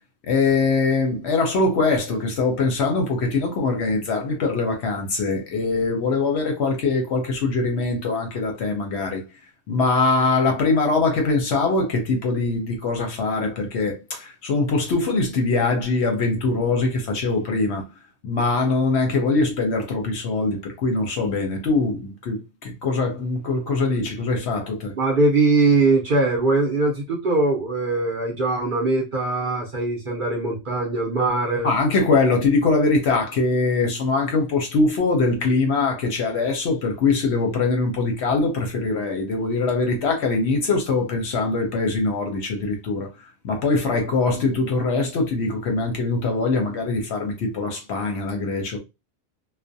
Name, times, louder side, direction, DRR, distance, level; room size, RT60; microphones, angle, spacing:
voice 1, 0.3-9.2 9.7-17.8 18.2-24.9 31.6-43.1 43.4-48.8, left 3 dB, 65° left, 0.8 m, -22 dB
voice 2, 24.9-31.7, right 3 dB, 50° right, 0.7 m, -21 dB
2.4 x 2.2 x 2.6 m
omnidirectional pair, 1.4 m